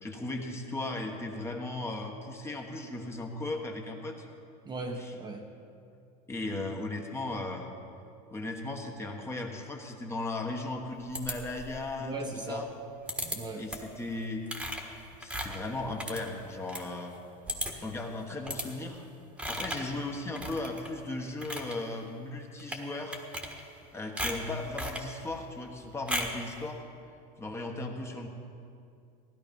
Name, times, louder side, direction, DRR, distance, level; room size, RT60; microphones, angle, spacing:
voice 1, 0.0-4.2 5.0-5.1 6.3-7.7 8.3-12.7 13.6-14.4 15.2-17.2 17.8-19.0 19.5-23.2 23.9-26.8 27.4-28.3, left 2 dB, 15° left, 2 dB, 1.4 m, -36 dB
voice 2, 4.6-5.5 12.0-12.6 13.2-13.7, right 2 dB, 25° right, 2 dB, 1.2 m, -37 dB
sound 1, 11.1-11.8 13.1-13.4 13.7-14.0 14.5-16.9 17.2-17.3 17.5-17.9 18.5-18.7 19.4-19.9 20.3-20.9 21.3-21.7 22.6-22.8 23.1-23.8 24.2-25.1 26.1-26.4, equal, 5° right, 1.6 m, -36 dB
17.0 x 11.5 x 5.4 m, 2.4 s
supercardioid pair, 130°, 19 cm